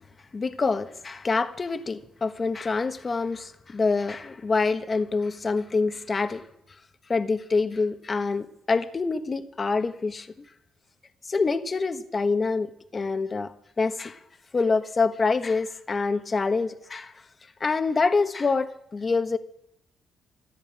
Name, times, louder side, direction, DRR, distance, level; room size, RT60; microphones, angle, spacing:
voice 1, 0.3-6.4 7.1-10.3 11.3-14.2 14.5-17.1 17.6-19.4, left 4 dB, 30° left, 10 dB, 1.3 m, -26 dB
14.5 x 10.5 x 8.8 m, 0.75 s
cardioid pair, 90°, 0 cm